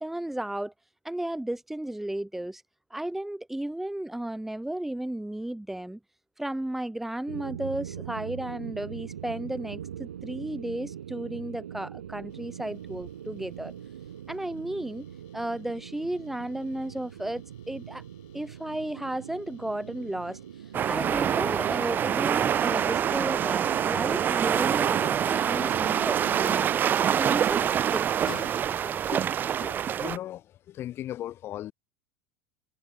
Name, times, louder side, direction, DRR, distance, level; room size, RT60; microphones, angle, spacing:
voice 1, 0.0-0.7 1.0-2.6 2.9-6.0 6.4-13.7 14.3-15.1 15.3-18.0 18.3-20.4 20.9-26.7 27.1-28.0, right 1 dB, 5° right, 1.2 m, -34 dB
sound 1, 7.3-26.8, right 10 dB, 90° right, 3.3 m, -43 dB
sound 2, 12.3-29.1, left 35 dB, 65° left, 4.2 m, -56 dB
sound 3, 20.7-30.2, right 9 dB, 35° right, 1.0 m, -25 dB
voice 2, 28.8-29.3 29.6-31.7, left 12 dB, 45° left, 2.9 m, -38 dB
hypercardioid pair, 90°, 6 cm